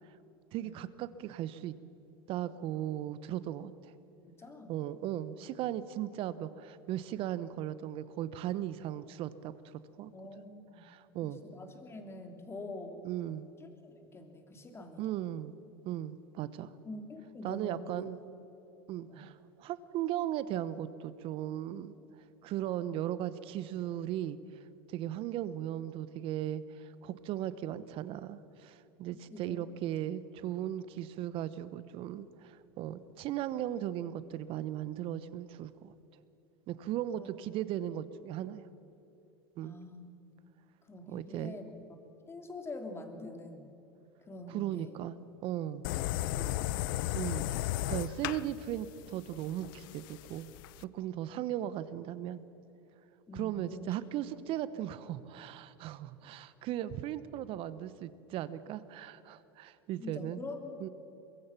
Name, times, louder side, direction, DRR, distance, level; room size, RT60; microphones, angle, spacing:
voice 1, 0.5-1.7 2.3-3.9 4.7-9.5 10.0-10.1 10.4-10.5 10.8-11.4 13.0-13.4 15.0-15.5 15.8-16.7 17.4-18.2 18.9-21.9 22.4-24.4 24.9-35.9 36.7-38.7 39.6-39.8 41.1-41.6 44.5-45.8 47.1-50.5 50.8-52.4 53.3-60.4 60.8-60.9, right 12 dB, 50° right, 15 dB, 1.0 m, -37 dB
voice 2, 4.3-4.8 10.1-10.8 11.2-13.0 13.8-15.0 16.8-18.1 19.1-19.2 29.3-29.6 37.1-37.3 39.6-40.1 40.9-41.7 42.3-43.7 44.3-45.0 45.9-46.6 53.3-54.0 60.0-60.9, left 2 dB, 20° left, 5 dB, 3.2 m, -45 dB
sound 1, 45.8-50.8, left 14 dB, 65° left, 0.7 m, -35 dB
23.0 x 23.0 x 6.0 m, 3.0 s
hypercardioid pair, 90°, 12 cm